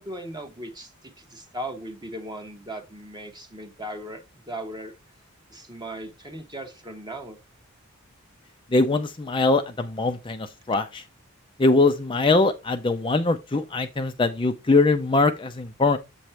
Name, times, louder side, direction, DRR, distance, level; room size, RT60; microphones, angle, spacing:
voice 1, 0.0-4.9 5.5-7.4, right 1 dB, 20° right, 1.2 m, -38 dB
voice 2, 8.7-11.0 11.6-16.0, left 3 dB, 25° left, 0.5 m, -22 dB
7.8 x 3.1 x 5.7 m
head